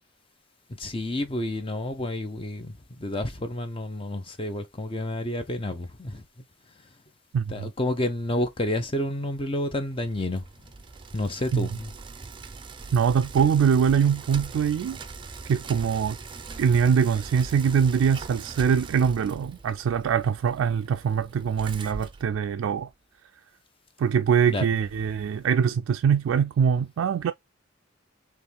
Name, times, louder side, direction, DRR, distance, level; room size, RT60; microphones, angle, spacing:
voice 1, 0.7-6.2 7.5-10.4 11.1-11.9 24.5-24.7, left 1 dB, 25° left, 0.6 m, -30 dB
voice 2, 7.3-7.7 11.5-11.7 12.9-15.0 15.5-16.2 16.6-22.9 24.0-27.3, right 7 dB, 85° right, 0.3 m, -23 dB
Bicycle, 9.8-22.9, right 4 dB, 25° right, 0.5 m, -41 dB
4.3 x 3.0 x 3.4 m
head